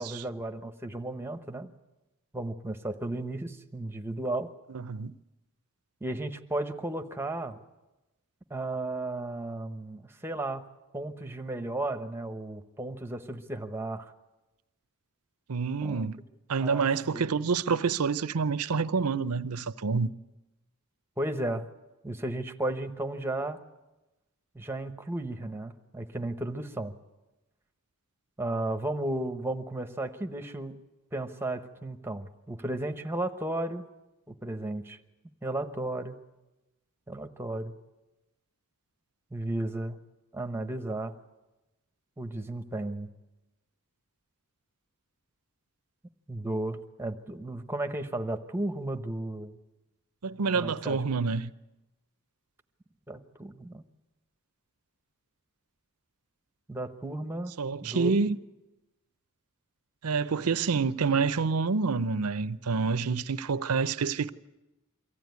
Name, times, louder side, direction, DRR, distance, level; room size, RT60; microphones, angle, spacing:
voice 1, 0.0-1.7 2.3-4.5 6.0-7.6 8.5-10.6 10.9-14.1 15.8-16.1 16.6-17.2 21.2-21.7 22.0-23.6 24.5-26.9 28.4-30.8 31.1-33.9 34.3-35.0 35.4-36.2 37.1-37.7 39.3-40.0 40.3-41.1 42.2-43.1 46.3-49.6 50.5-51.0 53.1-53.8 56.7-57.5 57.8-58.2, right 1 dB, 10° right, 1.0 m, -34 dB
voice 2, 4.7-5.1 15.5-16.2 16.5-20.1 50.2-51.5 57.6-58.4 60.0-64.3, right 5 dB, 85° right, 0.7 m, -28 dB
24.0 x 15.0 x 9.5 m
head